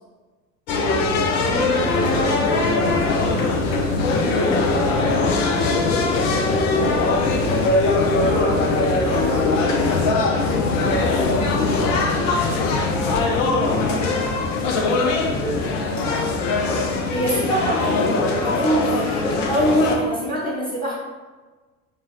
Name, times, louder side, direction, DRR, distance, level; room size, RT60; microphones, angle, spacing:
sound 1, 0.7-20.0, left 3 dB, 60° left, 0.6 m, -21 dB
voice 1, 1.4-6.8 7.6-10.2 10.8-14.0 14.7-15.7, equal, 10° right, -9 dB, 0.7 m, -33 dB
voice 2, 17.1-20.9, right 1 dB, 10° left, -6 dB, 1.0 m, -23 dB
4.8 x 2.2 x 2.6 m, 1.3 s
figure-of-eight pair, 70°, 43 cm